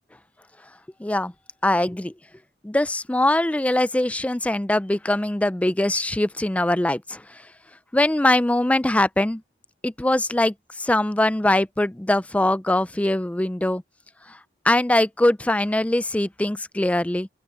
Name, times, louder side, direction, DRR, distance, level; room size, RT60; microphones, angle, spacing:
voice 1, 1.0-1.3 1.6-2.1 2.6-7.5 7.9-9.4 9.8-13.8 14.3-14.4 14.6-17.3, left 1 dB, 10° left, 0.4 m, -22 dB
open air
head